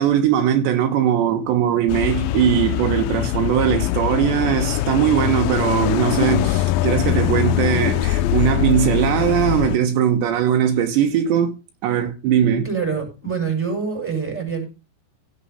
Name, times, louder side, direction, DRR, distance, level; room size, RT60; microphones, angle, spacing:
voice 1, 0.0-11.6 11.8-12.7, right 9 dB, 80° right, 3.5 m, -20 dB
sound 1, 1.9-9.8, left 13 dB, 80° left, 2.2 m, -22 dB
voice 2, 12.6-14.6, right 6 dB, 5° right, 5.9 m, -25 dB
16.5 x 6.8 x 5.7 m
omnidirectional pair, 5.1 m